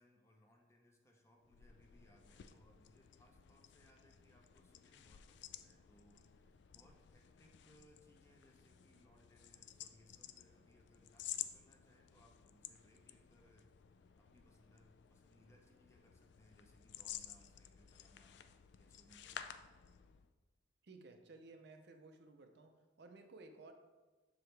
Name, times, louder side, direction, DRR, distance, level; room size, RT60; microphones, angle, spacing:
voice 1, 0.0-13.7 14.2-18.4 18.8-19.6, equal, 15° left, 1 dB, 0.7 m, -69 dB
sound 1, 1.4-20.3, left 10 dB, 60° left, 0.3 m, -53 dB
voice 2, 20.8-23.7, right 3 dB, 55° right, 5 dB, 0.5 m, -57 dB
6.9 x 4.7 x 3.3 m, 1.2 s
head